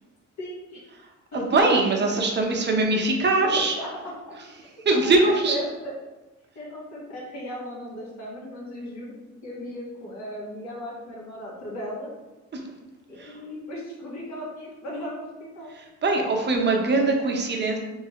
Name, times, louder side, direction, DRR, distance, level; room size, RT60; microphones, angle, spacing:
voice 1, 0.4-0.9 1.3-1.4 3.4-3.9 4.3-4.4 4.9-5.9 6.5-9.1 9.4-12.1 13.1-15.7, left 1 dB, 65° left, -5 dB, 1.4 m, -36 dB
voice 2, 1.3-3.8 4.9-5.6 12.5-12.6 13.2-13.3 16.0-17.8, right 2 dB, 35° right, 2 dB, 0.7 m, -22 dB
3.2 x 3.2 x 2.9 m, 1.1 s
cardioid pair, 90°, 30 cm